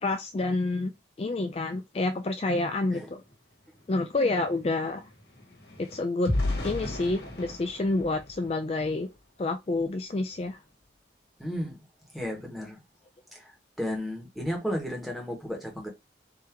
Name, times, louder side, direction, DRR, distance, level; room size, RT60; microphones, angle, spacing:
voice 1, 0.0-0.9 1.2-3.2 3.9-5.1 5.8-6.3 6.6-9.1 9.4-10.6, left 2 dB, 30° left, 0.3 m, -28 dB
sound 1, 3.3-3.4 3.7-9.2 9.7-9.9 10.2-10.5, left 1 dB, 55° left, 1.4 m, -35 dB
voice 2, 11.4-11.8 12.1-12.8 13.3-15.9, equal, ahead, 1.3 m, -33 dB
3.7 x 2.9 x 4.4 m
head